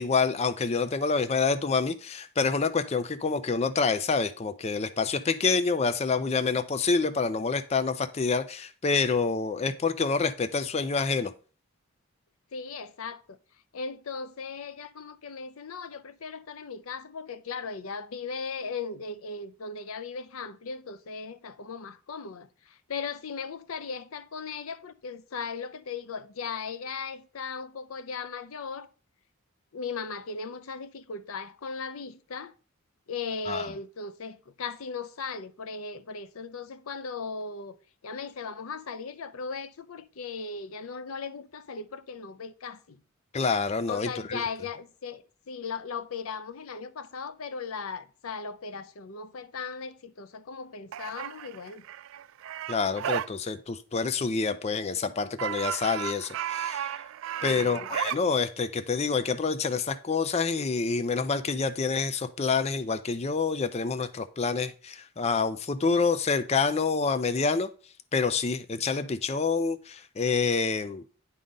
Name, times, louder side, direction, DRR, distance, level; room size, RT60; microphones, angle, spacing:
voice 1, 0.0-11.3 33.5-33.7 43.3-44.4 52.7-57.0 57.4-67.7 68.1-71.0, left 4 dB, 30° left, 0.4 m, -27 dB
voice 2, 12.5-13.4 13.7-28.9 29.7-32.5 33.1-37.8 38.0-43.0 43.9-51.9 57.4-57.9, left 5 dB, 80° left, 0.6 m, -37 dB
sound 1, 50.9-53.3 55.4-58.2, right 10 dB, 65° right, 0.3 m, -34 dB
9.8 x 3.8 x 5.2 m
head